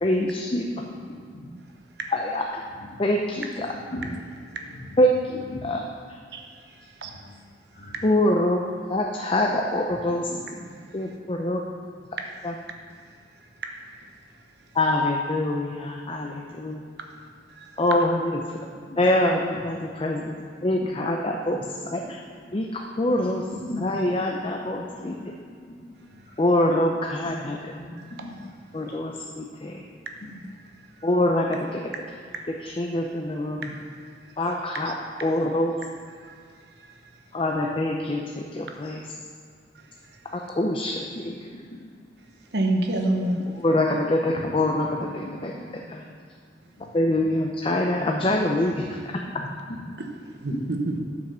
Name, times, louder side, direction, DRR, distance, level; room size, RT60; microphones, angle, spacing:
voice 1, 0.0-0.6 2.1-2.6 3.0-3.7 5.0-5.4 5.6-5.8 8.0-8.6 8.9-10.3 10.9-11.6 12.4-12.5 14.7-16.8 17.8-18.4 19.0-20.4 20.6-22.0 22.5-23.4 23.8-25.2 26.4-27.7 28.7-29.8 31.0-31.8 32.6-33.7 34.4-34.9 35.2-35.7 37.3-39.0 40.5-41.3 43.6-45.5 45.9-46.0 46.9-48.7, left 1 dB, 30° left, 1 dB, 0.6 m, -24 dB
voice 2, 0.8-1.2 2.8-3.0 3.6-4.1 4.5-5.0 5.5-5.7 7.0-7.4 7.7-7.9 10.3-10.6 18.7-19.0 20.8-20.9 21.5-21.7 22.4-22.6 23.5-24.0 24.3-25.7 26.1-26.4 27.2-27.4 27.7-27.9 28.2-28.3 28.8-29.5 30.2-30.3 33.5-33.9 35.8-35.9 40.9-41.2 41.5-41.9 44.2-45.7 46.0-46.1 46.8-47.2 47.9-48.7 49.0-49.4 50.9-51.0, left 1 dB, 60° left, -5 dB, 2.4 m, -40 dB
voice 3, 42.5-43.4 50.4-51.0, right 2 dB, 65° right, 3 dB, 1.0 m, -27 dB
9.3 x 5.2 x 6.8 m, 2.1 s
head